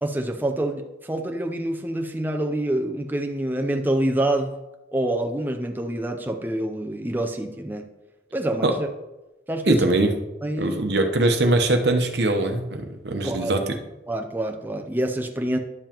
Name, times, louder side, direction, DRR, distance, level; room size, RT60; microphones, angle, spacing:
voice 1, 0.0-4.6 4.9-7.9 8.3-8.9 9.5-9.8 10.4-10.8 13.2-13.5 14.1-15.6, right 1 dB, 10° right, 4 dB, 0.5 m, -26 dB
voice 2, 9.7-10.2 10.6-13.7, right 2 dB, 70° right, 5 dB, 0.9 m, -22 dB
10.5 x 7.1 x 2.9 m, 1.0 s
head